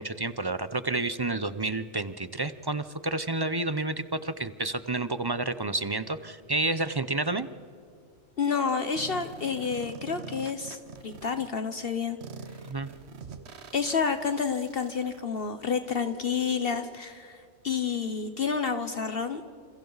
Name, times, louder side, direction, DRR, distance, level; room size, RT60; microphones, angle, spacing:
voice 1, 0.0-7.5 12.7-12.9, right 2 dB, 30° right, 13 dB, 0.5 m, -30 dB
voice 2, 8.4-12.2 13.7-19.4, left 6 dB, 60° left, 8 dB, 1.1 m, -29 dB
sound 1, 9.0-11.5 12.2-17.0, right 5 dB, 70° right, 1.2 m, -45 dB
29.5 x 27.5 x 4.0 m, 2.3 s
omnidirectional pair, 1.2 m